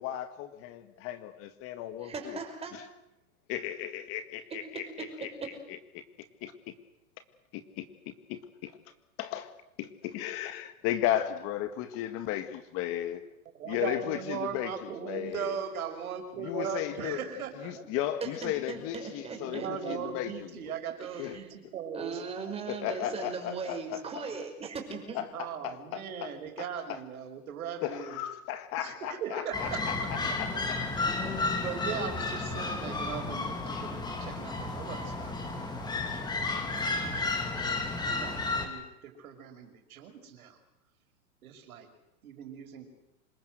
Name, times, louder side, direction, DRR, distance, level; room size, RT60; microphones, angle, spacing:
voice 1, 0.0-2.4 2.7-2.8 3.5-6.0 6.4-6.5 7.5-7.9 8.3-8.7 9.2-9.5 9.8-13.2 13.7-14.7 15.0-15.6 16.4-17.2 17.6-20.3 20.7-20.8 21.2-21.4 22.7-24.0 25.1-27.0 27.8-30.8, left 12 dB, 30° left, 10 dB, 1.8 m, -35 dB
voice 2, 2.0-2.7 4.7-5.5 18.2-19.7 21.0-21.4 21.9-25.2, right 5 dB, 15° right, 3 dB, 5.6 m, -38 dB
voice 3, 13.5-18.0 19.3-22.6 23.5-23.6 25.3-28.2 28.8-30.9 31.2-36.5 36.9-37.1 37.4-37.5 38.0-40.6 41.4-41.9 42.2-42.9, right 7 dB, 75° right, 6 dB, 5.8 m, -39 dB
sound 1, 29.5-38.7, left 3 dB, 10° left, 3.2 m, -32 dB
26.5 x 21.5 x 8.0 m, 0.90 s
supercardioid pair, 155°, 44 cm